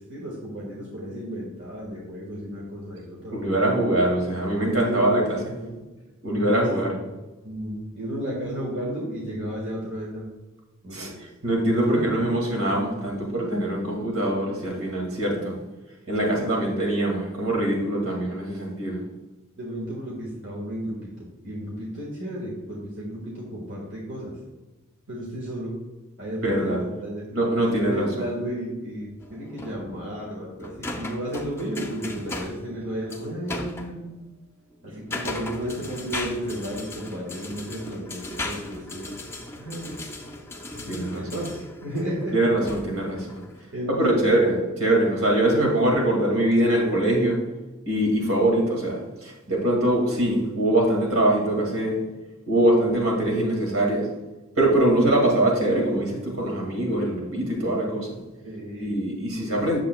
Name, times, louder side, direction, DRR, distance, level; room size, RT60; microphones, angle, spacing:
voice 1, 0.0-3.8 4.8-5.9 6.2-6.6 6.9-7.1 7.4-10.3 10.8-11.1 11.7-12.1 19.6-24.3 25.1-25.7 26.2-27.2 27.6-34.2 34.8-39.1 39.6-40.0 40.8-42.3 43.7-44.2 58.4-59.0, equal, 60° right, -4 dB, 1.7 m, -33 dB
voice 2, 3.3-5.4 6.2-6.9 10.9-11.1 11.4-15.6 16.1-19.0 26.4-26.8 27.3-28.1 40.9-41.2 42.3-43.4 43.9-47.4 47.9-52.0 52.5-54.1 54.6-58.2 58.8-59.8, right 1 dB, 75° right, -1 dB, 2.1 m, -23 dB
sound 1, 29.2-34.0 34.7-43.7, left 2 dB, 10° left, 0.6 m, -37 dB
8.5 x 7.1 x 2.3 m, 1.1 s
head